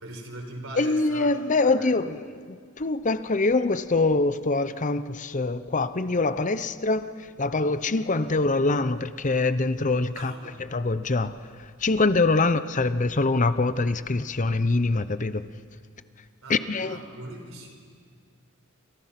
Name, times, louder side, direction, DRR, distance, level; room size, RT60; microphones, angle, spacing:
voice 1, 0.0-1.9 10.1-10.7 12.4-12.5 16.4-17.7, right 1 dB, 65° right, 4.9 m, -41 dB
voice 2, 0.8-10.3 10.7-15.4 16.5-17.0, left 3 dB, 35° left, 0.8 m, -24 dB
29.5 x 28.0 x 6.0 m
head